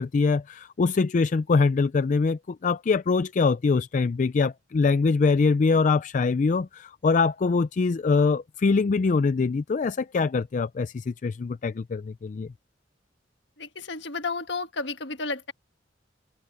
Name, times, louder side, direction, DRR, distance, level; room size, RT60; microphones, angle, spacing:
voice 1, 0.0-12.5, left 4 dB, 40° left, 0.4 m, -23 dB
voice 2, 13.6-15.5, left 3 dB, 65° left, 1.6 m, -32 dB
head